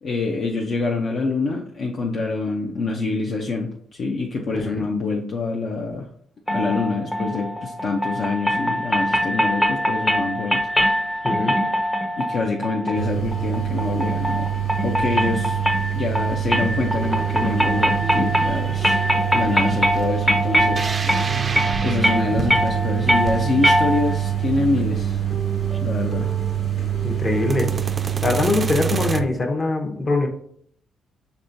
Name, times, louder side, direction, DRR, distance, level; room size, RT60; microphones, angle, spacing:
voice 1, 0.0-6.1 6.5-11.0 12.2-14.5 14.8-15.6 15.9-19.0 19.3-20.9 21.8-25.2 25.8-26.3, left 3 dB, 55° left, 0 dB, 0.6 m, -26 dB
voice 2, 4.5-4.9 11.2-11.6 27.0-27.8 28.2-30.3, left 3 dB, 35° left, 4 dB, 0.9 m, -23 dB
sound 1, 6.5-24.3, equal, 10° left, 0.6 m, -23 dB
sound 2, 12.9-29.2, right 10 dB, 80° left, 1.4 m, -25 dB
sound 3, 16.9-29.2, right 4 dB, 35° right, 0.3 m, -32 dB
5.3 x 3.5 x 2.6 m, 0.65 s
cardioid pair, 90°, 0 cm